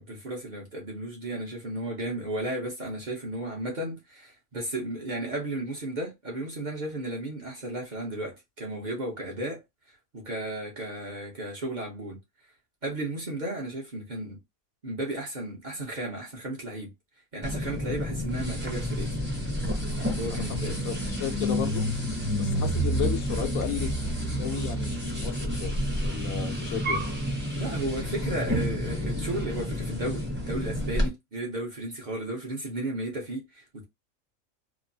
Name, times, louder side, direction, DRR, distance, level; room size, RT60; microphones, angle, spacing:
voice 1, 0.0-9.6 10.1-12.2 12.8-14.4 14.8-16.9 17.3-19.1 20.2-20.8 27.5-33.8, right 1 dB, 40° right, 0.8 m, -34 dB
sound 1, 17.4-31.1, equal, 10° right, 0.7 m, -29 dB
voice 2, 17.7-18.0 20.3-20.4 20.8-21.9 22.4-23.9 24.3-25.7 26.0-27.0, left 8 dB, 80° left, 1.0 m, -33 dB
3.0 x 2.0 x 2.6 m
omnidirectional pair, 1.4 m